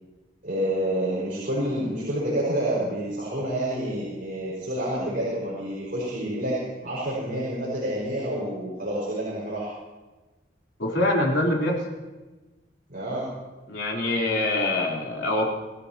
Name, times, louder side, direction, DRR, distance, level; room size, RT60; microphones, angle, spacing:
voice 1, 0.4-6.5 6.8-9.7 12.9-13.3, right 1 dB, 50° right, -7 dB, 5.7 m, -28 dB
voice 2, 10.8-11.8 13.7-15.5, left 1 dB, 80° left, -2 dB, 3.9 m, -24 dB
27.0 x 16.0 x 3.0 m, 1.2 s
head